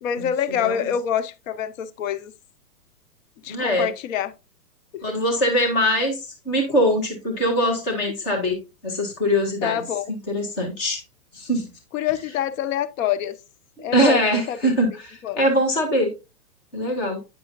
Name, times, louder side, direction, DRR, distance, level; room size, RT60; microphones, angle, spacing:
voice 1, 0.0-2.3 3.4-4.3 4.9-5.2 9.6-10.1 11.9-13.4 13.8-14.7 15.2-15.4, left 9 dB, 55° left, 0.7 m, -26 dB
voice 2, 0.6-0.9 3.5-3.9 5.0-9.8 10.1-11.0 11.3-11.7 13.8-16.1 16.7-17.2, equal, 10° left, 0.3 m, -22 dB
8.7 x 5.5 x 2.5 m
hypercardioid pair, 120°, 49 cm